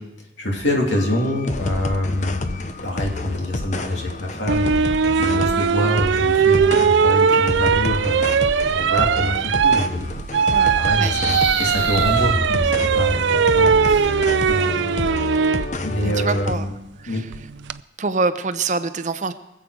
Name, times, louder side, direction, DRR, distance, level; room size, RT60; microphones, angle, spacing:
voice 1, 0.4-8.2 8.7-10.3 10.7-15.1 15.8-16.7 17.1-17.2, left 1 dB, 90° left, 0 dB, 2.8 m, -26 dB
sound 1, 0.9-16.5, left 2 dB, 40° left, 0.7 m, -29 dB
sound 2, 4.5-15.7 17.3-17.7, right 6 dB, 80° right, 0.4 m, -19 dB
voice 2, 10.5-11.1 16.0-16.7 17.0-17.2 18.0-19.3, right 3 dB, 40° right, 11 dB, 0.7 m, -25 dB
sound 3, 10.8-13.6, equal, 15° left, 3.2 m, -28 dB
23.5 x 7.8 x 4.9 m, 0.93 s
head